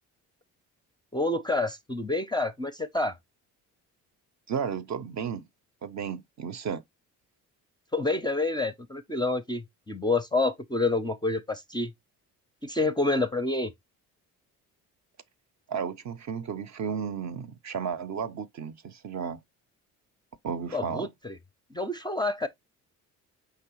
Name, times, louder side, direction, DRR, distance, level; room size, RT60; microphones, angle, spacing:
voice 1, 1.1-3.2 7.9-11.9 12.6-13.7 20.7-21.4 21.7-22.5, left 2 dB, 10° left, 0.5 m, -28 dB
voice 2, 4.5-5.4 5.8-6.8 15.7-19.4 20.4-21.1, right 7 dB, 40° right, 0.6 m, -33 dB
4.8 x 3.3 x 2.9 m
hypercardioid pair, 55°, 43 cm